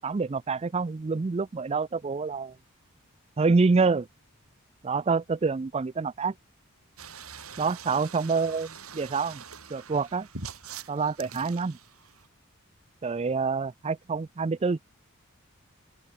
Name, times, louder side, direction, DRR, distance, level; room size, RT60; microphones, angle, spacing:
voice 1, 0.0-2.5 3.4-4.1 4.8-6.3 7.6-9.4 9.7-10.3 10.9-11.8 13.0-14.8, right 4 dB, 30° right, 0.4 m, -27 dB
sound 1, 7.0-12.3, right 6 dB, 75° right, 6.9 m, -44 dB
open air
head